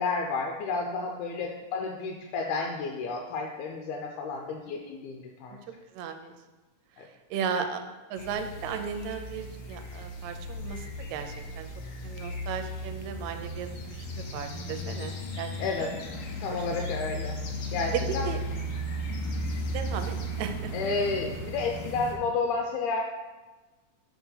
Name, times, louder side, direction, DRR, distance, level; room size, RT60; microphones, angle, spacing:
voice 1, 0.0-5.6 7.0-7.1 15.6-16.1 16.4-17.4 17.7-18.3 20.7-23.0, left 4 dB, 85° left, 2 dB, 2.0 m, -31 dB
voice 2, 5.9-6.3 7.3-7.8 8.1-11.7 12.0-15.5 15.8-15.9 16.5-16.7 17.9-18.4 19.7-20.7, right 7 dB, 80° right, 7 dB, 1.8 m, -35 dB
sound 1, 8.2-22.2, equal, 65° left, 1.4 m, -35 dB
5.8 x 4.4 x 5.5 m, 1.2 s
omnidirectional pair, 3.4 m